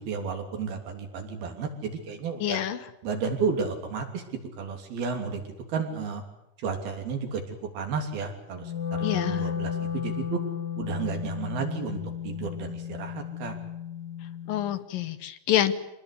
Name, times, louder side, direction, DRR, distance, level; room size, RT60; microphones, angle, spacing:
voice 1, 0.0-2.6 3.0-4.2 4.6-5.4 5.7-6.2 6.6-7.4 7.7-10.4 10.8-13.6, right 5 dB, 90° right, 4 dB, 5.0 m, -32 dB
voice 2, 2.4-2.8 9.0-9.5 14.5-15.7, left 12 dB, 70° left, 11 dB, 2.9 m, -27 dB
Wind instrument woodwind instrument, 8.5-14.8, left 8 dB, 45° left, 1.5 m, -33 dB
26.0 x 19.5 x 8.4 m, 0.88 s
omnidirectional pair, 4.2 m